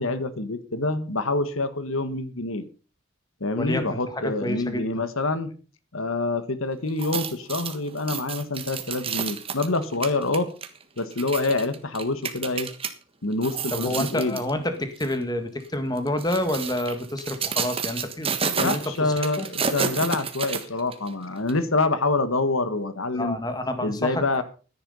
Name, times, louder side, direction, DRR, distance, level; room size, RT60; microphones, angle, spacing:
voice 1, 0.0-2.7 3.4-5.5 5.9-10.5 11.0-12.7 13.2-14.4 18.5-23.4 23.8-24.4, left 2 dB, 70° left, 12 dB, 1.4 m, -26 dB
voice 2, 3.6-5.0 13.7-19.5 23.1-24.4, left 1 dB, 20° left, 8 dB, 1.7 m, -29 dB
sound 1, 6.9-12.9 13.3-14.5 15.0-15.2 16.0-21.1 21.5-21.6, right 6 dB, 25° right, 1.4 m, -30 dB
14.5 x 10.0 x 5.5 m, 0.37 s
head